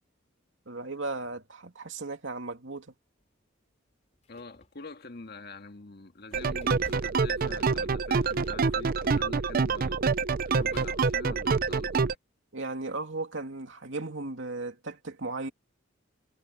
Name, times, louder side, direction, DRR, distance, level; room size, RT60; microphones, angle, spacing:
voice 1, 0.7-2.9 12.0-12.1 12.5-15.5, right 3 dB, 70° right, 2.9 m, -36 dB
sound 1, 3.2-3.4 4.0-5.4 5.9-11.4, left 1 dB, 35° left, 3.8 m, -55 dB
voice 2, 4.3-10.1 10.4-12.1, left 3 dB, 55° left, 1.7 m, -45 dB
sound 2, 6.3-12.1, right 4 dB, 45° right, 0.5 m, -27 dB
head